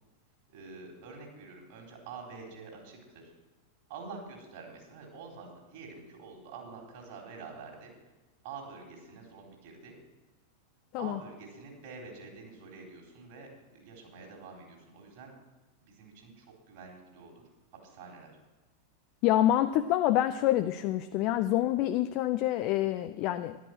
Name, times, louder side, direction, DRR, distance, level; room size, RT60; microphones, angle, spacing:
voice 1, 0.5-3.3 3.9-7.9 8.4-10.0 11.0-15.3 15.8-17.4 17.8-18.3, right 4 dB, 50° right, 1 dB, 4.2 m, -47 dB
voice 2, 19.2-23.6, left 13 dB, 40° left, 9 dB, 0.6 m, -27 dB
13.0 x 11.5 x 6.2 m, 1.1 s
figure-of-eight pair, 90°, 0 cm